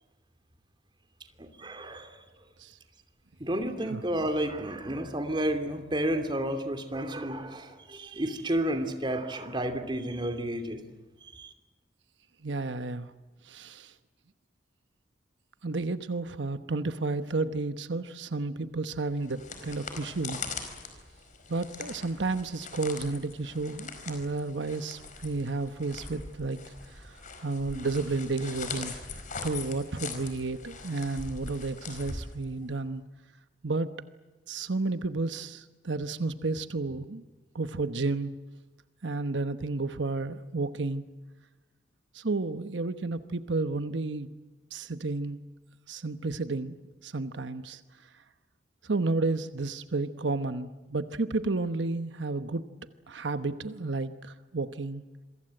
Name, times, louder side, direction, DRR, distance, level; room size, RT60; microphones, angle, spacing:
voice 1, 1.4-2.2 3.4-10.8 11.3-11.5, right 1 dB, 25° right, 8 dB, 2.9 m, -31 dB
voice 2, 12.4-13.1 13.4-13.9 15.6-20.4 21.5-26.6 26.9-28.9 29.4-33.0 33.6-33.9 34.5-37.2 37.5-38.3 39.0-41.0 42.1-44.3 44.7-45.4 45.9-46.8 47.0-47.8 48.8-52.7 53.1-55.0, right 3 dB, 85° right, 10 dB, 1.1 m, -32 dB
sound 1, 19.1-32.8, left 4 dB, 45° left, 4.7 m, -42 dB
27.5 x 23.5 x 7.8 m, 1.2 s
head